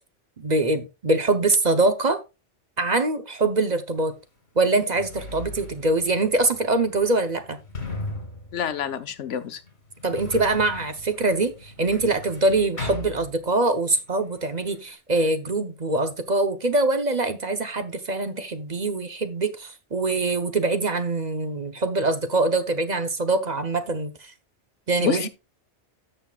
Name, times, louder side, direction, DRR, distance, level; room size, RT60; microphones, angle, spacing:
voice 1, 0.4-2.2 2.8-4.1 4.6-7.6 10.0-24.3 24.9-25.3, right 2 dB, 40° right, 0.9 m, -23 dB
Sliding door, 4.0-4.1 4.7-13.9 14.1-15.0, left 2 dB, 65° left, 2.4 m, -38 dB
voice 2, 8.5-9.6 25.0-25.3, left 8 dB, 85° left, 1.1 m, -27 dB
13.0 x 6.8 x 2.4 m
omnidirectional pair, 1.2 m